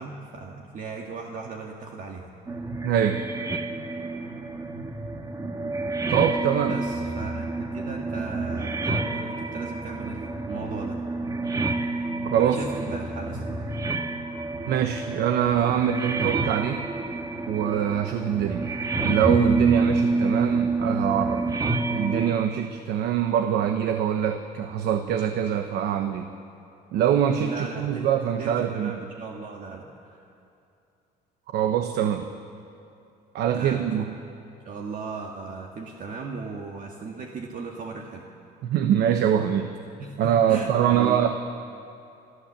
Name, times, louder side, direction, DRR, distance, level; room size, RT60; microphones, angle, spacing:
voice 1, 0.0-2.3 6.7-11.0 12.4-13.4 27.4-30.2 33.5-34.1 34.7-38.2 40.0-41.2, right 4 dB, 50° right, 1 dB, 1.8 m, -37 dB
sound 1, 2.5-22.3, right 3 dB, 20° right, 1.5 m, -28 dB
voice 2, 2.8-3.2 6.1-6.8 12.2-12.6 14.7-16.9 17.5-18.6 19.0-21.5 21.9-26.3 26.9-28.9 31.5-32.2 33.3-34.2 38.6-39.7 40.2-41.3, right 9 dB, 75° right, 7 dB, 1.1 m, -24 dB
28.0 x 13.5 x 7.5 m, 2.7 s
cardioid pair, 110°, 17 cm